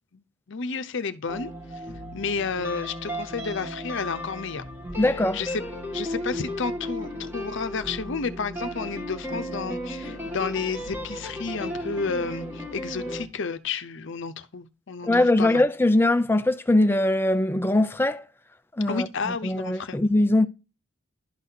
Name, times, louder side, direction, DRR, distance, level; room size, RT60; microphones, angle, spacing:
voice 1, 0.5-1.5 2.1-4.6 5.0-5.6 5.9-15.1 15.4-15.6 18.9-20.0, left 5 dB, 60° left, 0.7 m, -31 dB
sound 1, 1.3-13.3, equal, 10° right, 1.7 m, -35 dB
voice 2, 5.0-5.4 15.0-18.2 18.8-19.1 19.4-20.5, left 1 dB, 10° left, 0.4 m, -21 dB
12.0 x 4.1 x 2.8 m
head